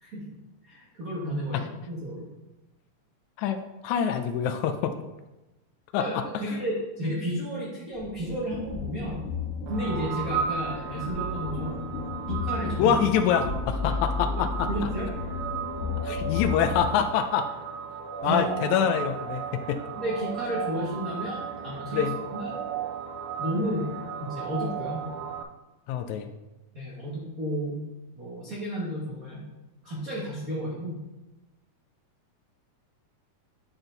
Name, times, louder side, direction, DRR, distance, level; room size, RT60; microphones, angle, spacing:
voice 1, 0.6-2.3 5.9-9.3 9.7-11.8 12.3-13.0 14.7-15.0 18.2-18.4 20.0-22.6 23.4-23.9 24.2-25.1 26.7-27.8 28.1-29.5 29.8-31.0, equal, 45° right, -6 dB, 1.2 m, -32 dB
voice 2, 3.8-4.9 5.9-6.2 12.8-14.7 16.0-17.4 18.2-19.8 21.9-22.2 25.9-26.3, left 8 dB, 80° left, 8 dB, 1.7 m, -25 dB
sound 1, 7.9-16.9, left 4 dB, 65° left, 1.8 m, -33 dB
sound 2, 9.7-25.4, right 7 dB, 80° right, 2.0 m, -35 dB
10.5 x 4.4 x 3.8 m, 1.1 s
omnidirectional pair, 3.7 m